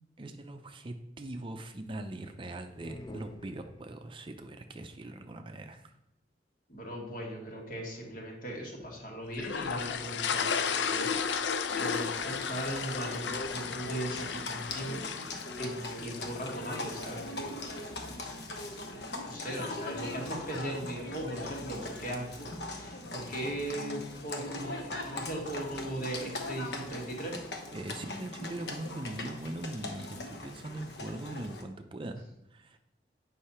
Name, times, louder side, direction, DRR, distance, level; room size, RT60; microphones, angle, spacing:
voice 1, 0.2-5.9 27.7-32.8, right 1 dB, 30° right, 6 dB, 0.5 m, -41 dB
sound 1, 2.7-4.2, left 1 dB, 25° left, 0.4 m, -48 dB
voice 2, 6.7-11.5 11.8-17.6 18.9-22.5 22.7-27.3, right 1 dB, 50° left, -1 dB, 1.9 m, -39 dB
sound 2, 9.4-16.7, left 6 dB, 90° left, 0.5 m, -34 dB
Livestock farm animals working animals, 11.7-31.6, left 2 dB, 65° left, 1.0 m, -40 dB
8.4 x 5.6 x 4.3 m, 0.85 s
head